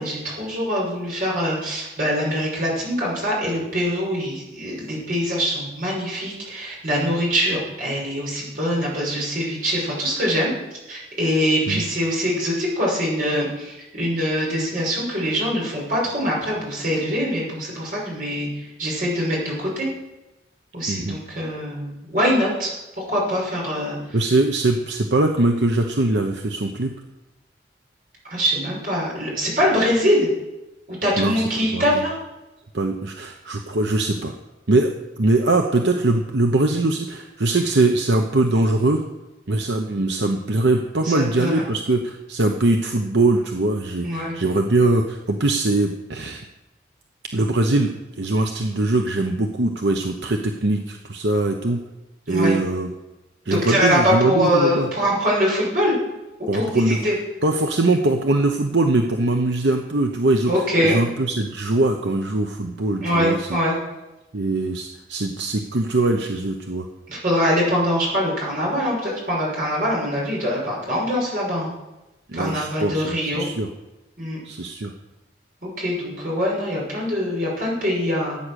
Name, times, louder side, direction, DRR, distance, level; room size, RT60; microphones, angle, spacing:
voice 1, 0.0-10.5 10.9-19.9 20.7-22.7 23.1-24.0 28.3-30.3 30.9-32.2 41.0-41.6 44.0-44.3 52.3-52.5 53.4-56.0 56.4-57.1 60.5-61.0 63.0-63.7 67.1-71.7 72.3-73.5 74.2-74.4 75.6-78.4, equal, 50° right, -4 dB, 6.3 m, -23 dB
voice 2, 24.1-26.9 31.2-32.0 32.7-34.3 34.7-34.9 35.2-39.0 39.5-46.4 47.3-51.8 52.3-52.9 53.5-54.9 56.5-57.0 57.4-60.5 60.8-63.6 64.3-66.9 72.3-73.7 74.4-74.9, right 2 dB, 80° right, 4 dB, 1.0 m, -21 dB
15.0 x 8.9 x 6.5 m, 1.0 s
head